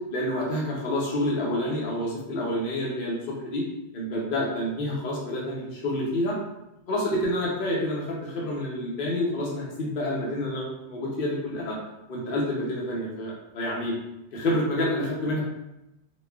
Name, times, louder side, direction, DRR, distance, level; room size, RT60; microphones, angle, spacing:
voice 1, 0.1-3.6 3.9-6.4 6.9-11.8 12.1-13.9 14.3-15.4, left 1 dB, 50° left, -4 dB, 0.8 m, -28 dB
4.0 x 2.3 x 2.3 m, 0.90 s
omnidirectional pair, 1.2 m